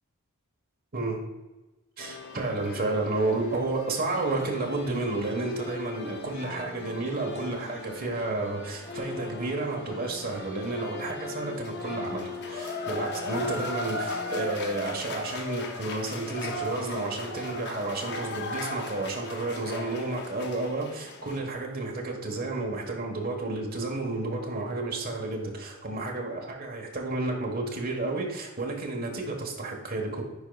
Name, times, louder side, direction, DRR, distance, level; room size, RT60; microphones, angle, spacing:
sound 1, 2.0-21.4, left 3 dB, 50° left, 0.7 m, -38 dB
voice 1, 2.0-30.2, right 2 dB, 45° right, 0 dB, 1.3 m, -31 dB
10.0 x 4.5 x 2.3 m, 1.1 s
head